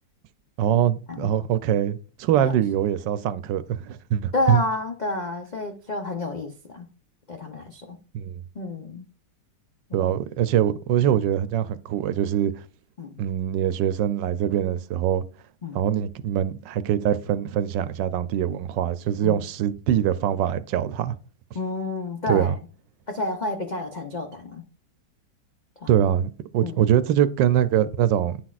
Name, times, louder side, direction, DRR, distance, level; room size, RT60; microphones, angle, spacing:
voice 1, 0.6-4.6 8.1-8.4 9.9-12.5 13.2-15.2 15.7-21.1 22.3-22.6 25.9-28.4, right 10 dB, 80° right, 1.3 m, -23 dB
voice 2, 4.3-6.9 7.3-8.0 8.5-9.0 9.9-10.1 13.0-13.1 15.6-15.8 19.2-19.4 21.5-22.6 23.1-24.6 25.8-25.9 26.6-26.8, left 2 dB, 65° left, 0.4 m, -30 dB
9.8 x 6.0 x 2.4 m
omnidirectional pair, 1.9 m